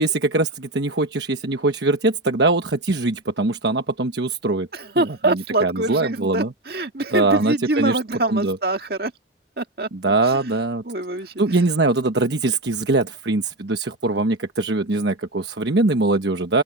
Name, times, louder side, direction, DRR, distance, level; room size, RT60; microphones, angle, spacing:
voice 1, 0.0-4.7 5.0-6.5 7.1-8.0 8.3-8.6 9.9-10.8 11.4-16.6, right 2 dB, 70° right, 1.2 m, -22 dB
voice 2, 4.7-9.1 9.6-10.1 10.9-11.3, right 2 dB, 55° right, 2.0 m, -25 dB
open air
head